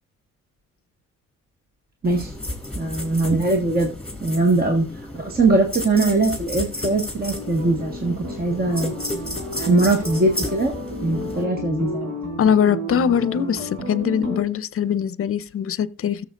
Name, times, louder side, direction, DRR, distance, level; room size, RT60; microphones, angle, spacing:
sound 1, 2.0-11.4, left 1 dB, 5° left, 3.0 m, -33 dB
voice 1, 2.7-3.9 4.2-4.8 5.1-8.9 9.5-10.7 11.0-12.1, right 2 dB, 30° right, 1.7 m, -21 dB
sound 2, 7.2-14.4, equal, 60° right, 4.0 m, -32 dB
voice 2, 12.4-16.2, left 8 dB, 45° left, 0.7 m, -22 dB
17.0 x 7.1 x 2.5 m
cardioid pair, 90°, 30 cm